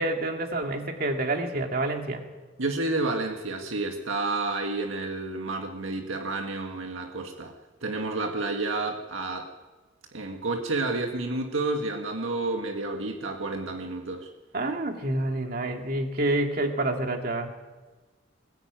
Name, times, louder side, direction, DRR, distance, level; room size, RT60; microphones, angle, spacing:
voice 1, 0.0-2.2 14.5-17.5, right 2 dB, 45° right, 3 dB, 2.5 m, -28 dB
voice 2, 2.6-7.5 7.8-9.5 10.1-14.3, right 2 dB, 75° right, 3 dB, 1.7 m, -30 dB
20.0 x 19.0 x 9.1 m, 1.2 s
head